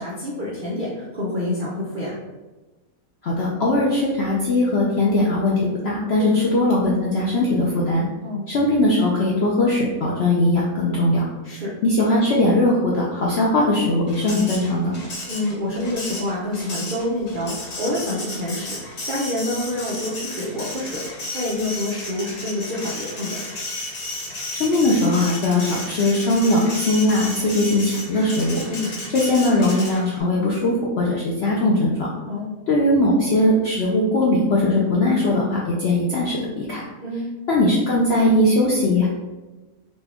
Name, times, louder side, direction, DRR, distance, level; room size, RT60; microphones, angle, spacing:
voice 1, 0.0-2.2 6.1-6.5 8.2-8.5 11.4-11.7 15.3-23.4 28.7-29.0 32.2-32.6 37.0-37.2, left 1 dB, 65° right, -6 dB, 0.5 m, -27 dB
voice 2, 3.2-8.0 8.5-11.2 11.8-14.9 24.6-28.6 29.1-32.1 32.7-36.8 37.5-39.1, left 1 dB, 70° left, -4 dB, 0.6 m, -20 dB
Printer, 14.1-30.2, left 2 dB, 50° left, 1.0 m, -33 dB
4.2 x 2.3 x 3.5 m, 1.1 s
omnidirectional pair, 1.7 m